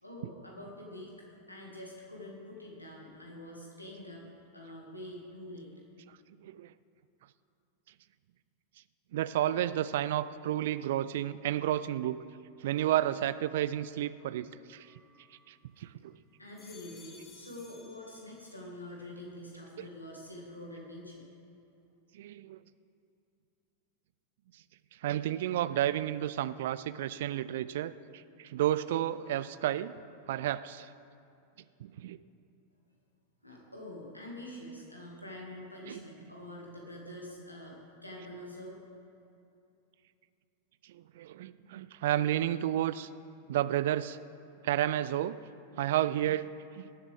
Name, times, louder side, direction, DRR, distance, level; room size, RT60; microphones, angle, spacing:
voice 1, 0.0-1.1 1.5-4.2 4.5-5.7 16.4-21.3 33.4-38.8, left 1 dB, 85° left, -2 dB, 2.0 m, -46 dB
voice 2, 6.1-6.7 9.1-12.2 12.6-14.9 15.5-16.2 19.8-19.9 22.1-22.6 25.0-29.9 30.3-30.9 31.8-32.2 35.9-36.0 40.8-43.1 43.5-44.2 44.6-45.4 45.7-46.9, right 12 dB, 55° right, 16 dB, 0.3 m, -31 dB
sound 1, 14.8-15.9 16.4-18.8 19.1-19.7, left 3 dB, 20° left, 1.2 m, -58 dB
18.5 x 7.3 x 3.5 m, 2.7 s
figure-of-eight pair, 90°, 0 cm